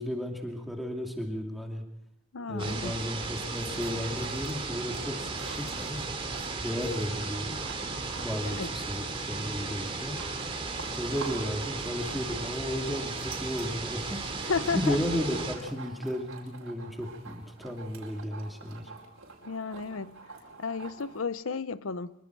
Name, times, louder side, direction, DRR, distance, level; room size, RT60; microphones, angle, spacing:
voice 1, 0.0-1.8 2.5-6.1 6.6-7.6 8.2-10.2 10.9-18.9, equal, ahead, 2.5 m, -34 dB
voice 2, 2.3-2.9 8.5-8.7 14.5-15.0 19.4-20.2 20.6-22.1, left 4 dB, 85° left, 0.7 m, -32 dB
sound 1, 2.6-15.5, right 3 dB, 25° right, 2.6 m, -35 dB
sound 2, 3.2-21.2, right 4 dB, 90° right, 5.0 m, -48 dB
25.0 x 23.5 x 4.7 m
head